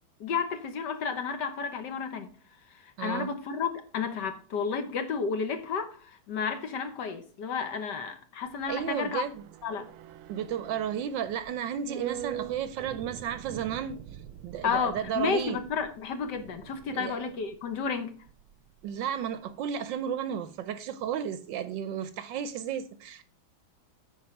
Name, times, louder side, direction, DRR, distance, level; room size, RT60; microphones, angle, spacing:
voice 1, 0.2-2.3 3.0-9.2 9.6-9.8 14.6-18.1, left 6 dB, 60° left, 1.4 m, -32 dB
voice 2, 3.0-3.3 8.7-9.4 10.3-15.6 16.9-17.3 18.8-23.2, right 9 dB, 70° right, 1.2 m, -33 dB
sound 1, 8.5-18.9 19.2-19.3, right 11 dB, 90° right, 1.5 m, -44 dB
9.5 x 4.5 x 5.7 m
omnidirectional pair, 2.3 m